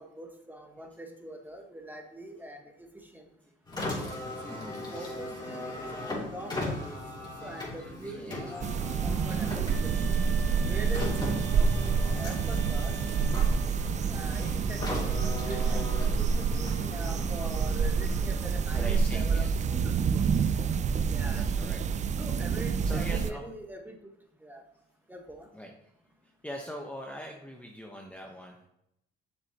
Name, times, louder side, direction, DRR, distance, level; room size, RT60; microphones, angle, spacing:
voice 1, 0.0-3.2 4.4-7.0 7.4-10.1 10.7-12.9 14.1-15.8 16.1-20.2 21.1-21.5 22.2-24.0 24.4-24.6 25.1-25.5, right 1 dB, 10° right, 4 dB, 1.4 m, -43 dB
Car, 3.6-19.1, left 1 dB, 25° left, 3.1 m, -39 dB
voice 2, 4.5-5.2 7.4-8.5 8.9-9.0 11.2-11.7 13.6-13.7 18.7-19.5 19.9-20.3 21.3-21.8 22.8-23.5 25.5-25.9 26.2-28.7, equal, 5° left, 0 dB, 1.0 m, -43 dB
sound 1, 8.6-23.3, right 5 dB, 40° right, 0.4 m, -28 dB
sound 2, 9.7-13.8, right 5 dB, 85° right, 1.1 m, -45 dB
7.7 x 6.8 x 2.9 m, 0.79 s
cardioid pair, 95°, 19 cm